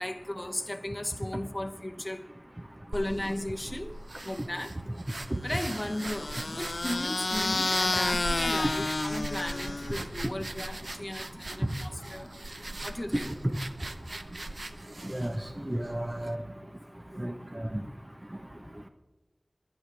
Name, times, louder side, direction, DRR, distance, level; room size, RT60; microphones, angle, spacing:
voice 1, 0.0-2.3 2.9-4.8 5.4-12.3 12.8-13.3, left 1 dB, 30° left, 0.9 m, -36 dB
sound 1, 2.9-16.4, right 2 dB, 80° right, 0.8 m, -41 dB
sound 2, 5.6-10.1, left 2 dB, 75° left, 0.4 m, -30 dB
voice 2, 15.0-16.4 17.2-17.7, right 1 dB, 30° right, 1.0 m, -33 dB
23.0 x 10.5 x 3.4 m
wide cardioid pair, 40°, 0 cm